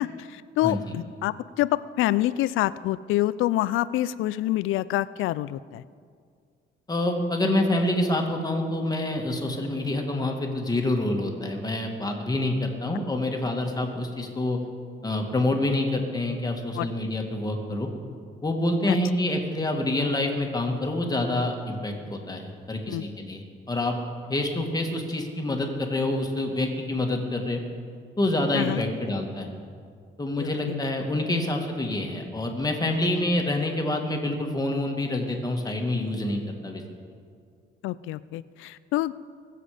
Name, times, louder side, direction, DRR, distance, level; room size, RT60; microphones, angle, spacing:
voice 1, 0.0-5.8 16.8-16.9 18.9-19.0 22.9-23.0 28.5-28.8 30.4-30.5 37.8-39.3, left 15 dB, 85° left, 18 dB, 0.4 m, -27 dB
voice 2, 6.9-14.6 15.0-17.9 18.4-23.9 24.3-27.6 28.2-29.5 30.2-36.8, left 1 dB, 20° left, 2 dB, 2.1 m, -27 dB
22.0 x 7.6 x 5.1 m, 2.1 s
cardioid pair, 90°, 20 cm